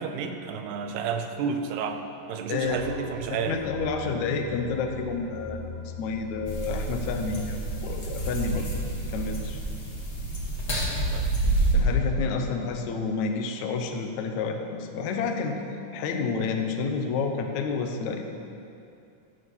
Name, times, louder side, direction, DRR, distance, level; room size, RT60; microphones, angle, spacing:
voice 1, 0.0-3.6 10.7-11.3, right 6 dB, 90° right, 6 dB, 2.9 m, -31 dB
voice 2, 2.5-2.8 3.5-5.7 6.0-8.7 9.1-9.6 11.7-15.6 15.9-18.2, left 4 dB, 70° left, 4 dB, 1.8 m, -29 dB
sound 1, 2.6-8.6, left 3 dB, 10° right, 3.1 m, -42 dB
sound 2, 6.4-11.7, right 2 dB, 35° left, 1.0 m, -29 dB
12.5 x 9.3 x 6.2 m, 2.6 s
omnidirectional pair, 4.5 m